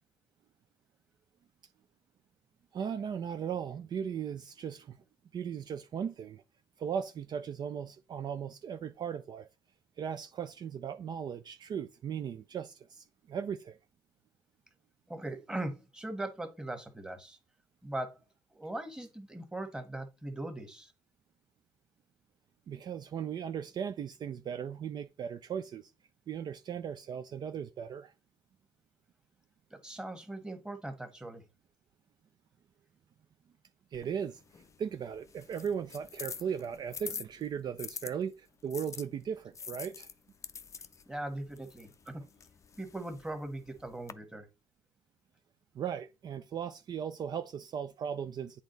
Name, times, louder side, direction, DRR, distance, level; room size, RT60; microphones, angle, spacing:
voice 1, 2.7-5.0 5.3-6.4 6.8-9.5 10.0-13.8 22.7-25.9 26.3-28.1 33.9-34.4 34.8-40.1 45.7-48.6, right 7 dB, 50° right, 0.5 m, -37 dB
voice 2, 15.1-17.4 17.8-18.2 18.5-20.9 29.7-31.4 41.1-42.2 42.8-44.5, right 1 dB, 10° right, 1.4 m, -40 dB
sound 1, 33.9-38.1 38.7-44.1, left 6 dB, 35° left, 0.5 m, -46 dB
8.3 x 3.5 x 3.9 m
cardioid pair, 90°, 9 cm